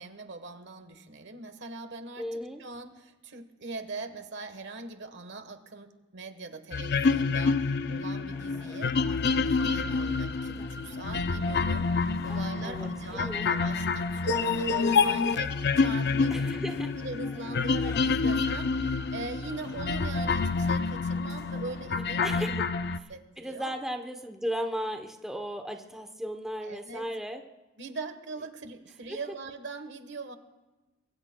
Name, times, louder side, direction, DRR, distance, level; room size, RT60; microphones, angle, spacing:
voice 1, 0.0-11.9 12.2-16.5 16.9-22.6 23.1-23.7 26.6-27.1 27.8-30.4, right 3 dB, 60° right, 8 dB, 1.2 m, -42 dB
voice 2, 2.2-2.6 12.3-13.5 16.3-16.9 22.2-22.7 23.0-23.1 23.4-27.4 29.1-29.2, equal, ahead, 4 dB, 0.8 m, -36 dB
sound 1, 6.7-23.0, left 4 dB, 55° left, 0.5 m, -28 dB
sound 2, 8.3-21.9, left 1 dB, 20° left, 1.5 m, -49 dB
24.5 x 22.0 x 2.2 m, 1.1 s
head